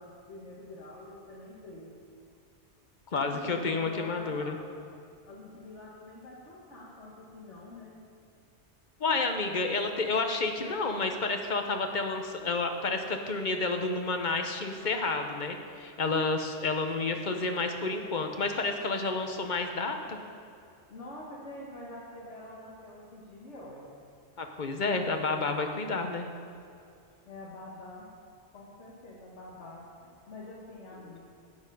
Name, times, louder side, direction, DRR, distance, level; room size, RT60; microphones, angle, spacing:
voice 1, 0.0-2.0 3.3-4.6 5.2-8.0 20.9-23.9 27.3-28.1 28.5-31.2, left 1 dB, 75° left, -5 dB, 1.7 m, -46 dB
voice 2, 3.1-4.6 9.0-20.2 24.4-26.3, left 3 dB, 45° left, 5 dB, 0.9 m, -30 dB
12.0 x 8.0 x 5.4 m, 2.5 s
omnidirectional pair, 1.2 m